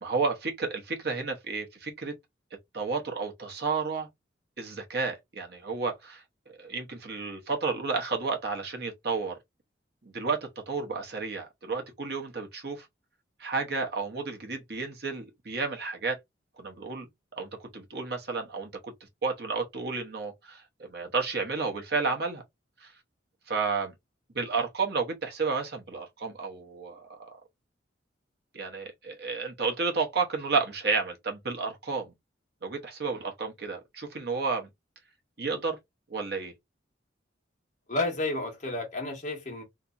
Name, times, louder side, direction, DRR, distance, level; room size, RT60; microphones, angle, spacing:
voice 1, 0.0-2.1 2.7-4.1 4.6-6.2 6.6-9.4 10.0-12.9 13.4-16.2 16.6-17.1 17.4-18.7 19.2-22.4 22.8-22.9 23.5-23.9 24.3-27.3 28.5-32.1 32.6-34.7 35.4-35.8 36.1-36.5, right 4 dB, 55° right, 0.9 m, -31 dB
voice 2, 37.9-39.6, left 2 dB, 40° left, 1.2 m, -31 dB
3.3 x 2.9 x 2.5 m
head